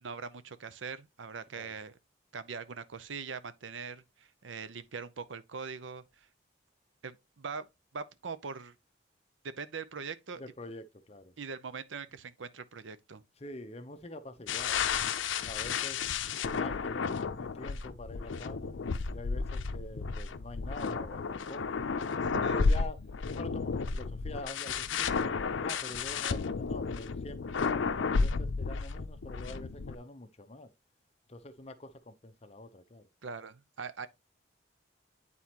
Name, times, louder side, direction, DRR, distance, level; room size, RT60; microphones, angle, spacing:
voice 1, 0.0-2.0 2.3-6.3 7.0-7.7 7.9-8.8 9.4-10.4 11.4-13.2 22.2-22.8 33.2-34.1, right 5 dB, 90° right, 0.7 m, -42 dB
voice 2, 10.4-11.3 13.4-15.0 15.4-16.0 16.5-18.8 19.1-21.9 22.5-23.0 23.3-30.7 31.3-33.1, left 2 dB, 35° left, 0.7 m, -45 dB
sound 1, 14.5-30.0, left 5 dB, 90° left, 0.6 m, -32 dB
9.4 x 4.2 x 2.9 m
head